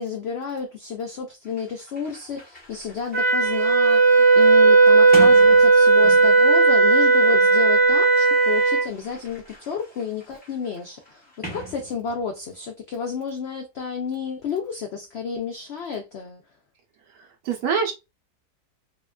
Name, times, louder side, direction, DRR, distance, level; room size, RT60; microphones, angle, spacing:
voice 1, 0.0-16.4, left 6 dB, 80° left, 0.5 m, -31 dB
Sliding door, 1.1-1.2 1.4-6.5 7.4-12.4, right 3 dB, 10° left, 0.7 m, -41 dB
Wind instrument woodwind instrument, 3.1-8.9, right 3 dB, 50° right, 0.7 m, -15 dB
voice 2, 17.1-17.9, right 6 dB, 80° right, 1.1 m, -26 dB
2.7 x 2.3 x 2.2 m
omnidirectional pair, 1.6 m